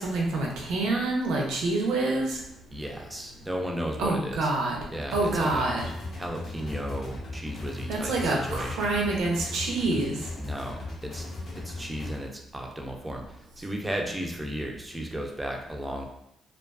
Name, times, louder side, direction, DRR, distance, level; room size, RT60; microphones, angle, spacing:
voice 1, 0.0-2.4 4.0-4.8 5.1-5.9 7.9-10.2, right 2 dB, 85° right, -2 dB, 0.6 m, -27 dB
voice 2, 2.7-4.5 4.9-5.7 6.1-8.9 10.4-16.1, equal, 10° right, 1 dB, 0.4 m, -35 dB
sound 1, 5.1-12.2, left 2 dB, 65° left, 0.6 m, -38 dB
2.4 x 2.3 x 2.3 m, 0.77 s
cardioid pair, 90°, 0 cm